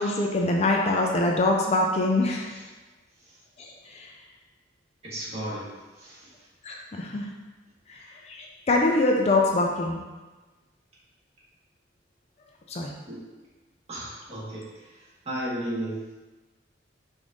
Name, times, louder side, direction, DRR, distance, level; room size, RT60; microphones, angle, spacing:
voice 1, 0.0-2.6 3.6-4.1 6.6-7.3 7.9-10.0 12.7-12.9, left 2 dB, 35° left, 0 dB, 0.4 m, -24 dB
voice 2, 5.0-5.7 6.0-6.3 7.1-7.2 8.0-8.1 13.1-13.2 13.9-16.0, right 1 dB, 35° right, -9 dB, 1.5 m, -34 dB
5.0 x 2.6 x 3.6 m, 1.2 s
head